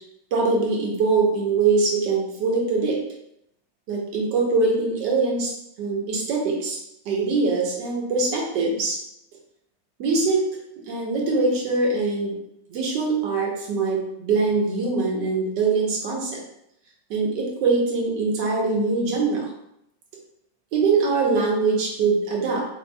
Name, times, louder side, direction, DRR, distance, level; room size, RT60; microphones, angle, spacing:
voice 1, 0.3-3.0 3.9-5.5 5.8-6.8 7.0-9.0 10.0-10.5 10.9-12.4 12.7-16.4 17.1-19.5 20.7-22.7, right 3 dB, 70° right, -2 dB, 1.4 m, -23 dB
5.9 x 2.2 x 2.2 m, 0.77 s
omnidirectional pair, 2.2 m